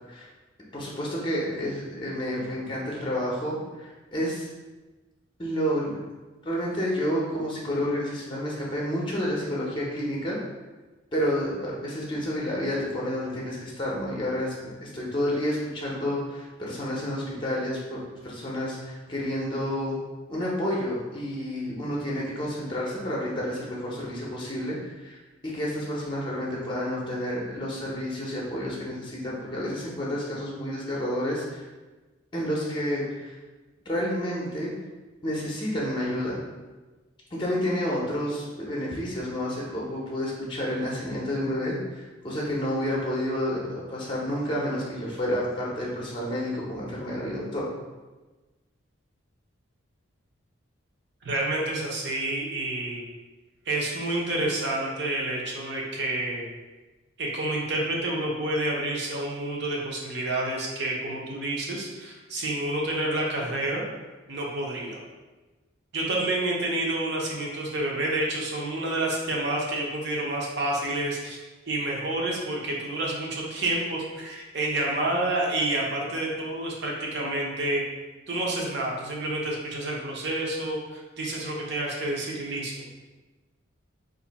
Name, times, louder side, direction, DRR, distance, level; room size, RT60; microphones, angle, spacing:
voice 1, 0.7-4.5 5.4-5.9 6.4-10.4 11.1-20.0 20.3-31.7 32.3-33.3 33.9-34.7 35.2-36.4 37.3-47.7, equal, 25° left, -4 dB, 0.6 m, -30 dB
voice 2, 51.2-53.0 53.7-56.5 57.2-63.8 64.3-65.0 65.9-71.4 71.7-77.8 78.3-82.8, right 1 dB, 55° right, -2 dB, 0.7 m, -29 dB
2.6 x 2.5 x 4.0 m, 1.2 s
head